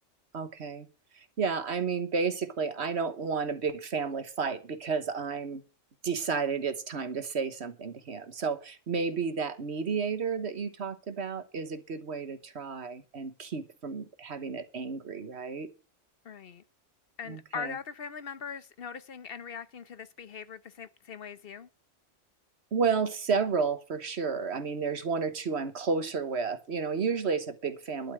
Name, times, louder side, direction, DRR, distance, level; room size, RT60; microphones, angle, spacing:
voice 1, 0.3-0.9 1.1-5.6 6.0-15.7 17.3-17.7 22.7-28.1, right 5 dB, 60° right, 1.4 m, -32 dB
voice 2, 16.2-16.6 17.2-21.7, left 6 dB, 50° left, 1.0 m, -41 dB
12.0 x 5.7 x 8.7 m
omnidirectional pair, 1.3 m